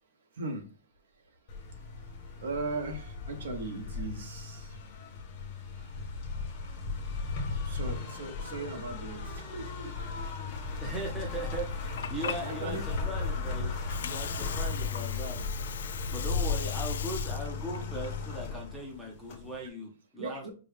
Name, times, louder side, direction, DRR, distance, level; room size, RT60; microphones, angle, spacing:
voice 1, 0.4-0.7 2.3-4.8 5.8-5.9 7.6-9.9 12.2-12.8 20.2-20.5, right 3 dB, 60° right, 5 dB, 1.1 m, -38 dB
sound 1, 1.5-19.7, left 4 dB, 30° left, 0.8 m, -36 dB
voice 2, 10.8-20.5, right 1 dB, 5° right, -2 dB, 0.6 m, -39 dB
Water, 11.6-19.6, left 8 dB, 70° left, 0.3 m, -41 dB
5.4 x 2.2 x 3.5 m, 0.36 s
hypercardioid pair, 180°, 0 cm